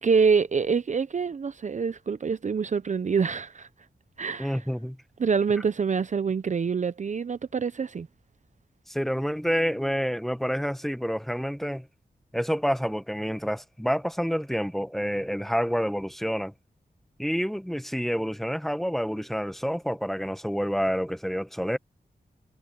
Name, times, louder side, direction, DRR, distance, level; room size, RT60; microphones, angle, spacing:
voice 1, 0.0-3.7 4.2-4.6 5.2-8.1, right 5 dB, 45° right, 0.5 m, -26 dB
voice 2, 4.4-5.0 8.9-11.9 12.3-16.5 17.2-21.8, equal, ahead, 1.2 m, -28 dB
wide cardioid pair, 105°, 17 cm